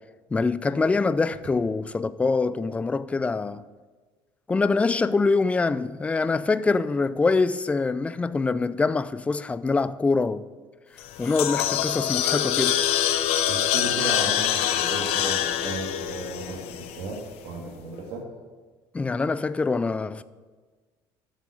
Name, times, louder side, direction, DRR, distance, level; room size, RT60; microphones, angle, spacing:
voice 1, 0.3-3.6 4.5-10.5 11.2-12.8 18.9-20.2, left 4 dB, 15° left, 0.3 m, -24 dB
sound 1, 11.0-17.3, left 11 dB, 80° left, 0.7 m, -25 dB
voice 2, 13.5-16.6 17.0-18.2, right 3 dB, 70° right, 2.1 m, -34 dB
7.4 x 7.0 x 7.5 m
cardioid pair, 135°, 10 cm